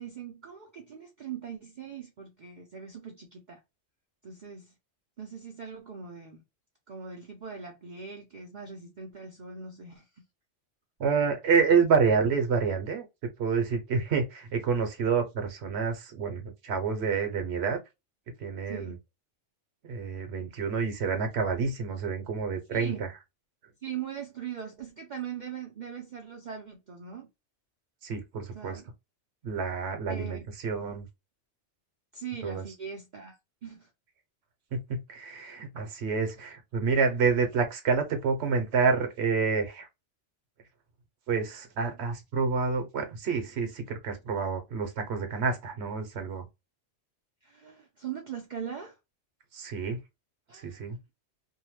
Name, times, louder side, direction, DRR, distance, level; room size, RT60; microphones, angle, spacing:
voice 1, 0.0-3.6 4.2-4.7 5.2-6.4 6.9-10.2 18.7-18.9 22.7-23.0 23.8-27.3 28.5-28.8 30.1-30.5 30.9-31.0 32.1-33.4 33.6-33.9 47.4-49.0 50.5-51.0, right 7 dB, 50° right, 0.6 m, -41 dB
voice 2, 11.0-13.1 13.4-17.8 18.4-18.9 19.8-23.1 28.0-28.8 29.4-31.1 32.4-32.6 34.7-39.9 41.3-46.4 49.5-50.0 50.5-51.0, right 5 dB, 65° right, 1.0 m, -28 dB
2.7 x 2.1 x 3.0 m
omnidirectional pair, 1.2 m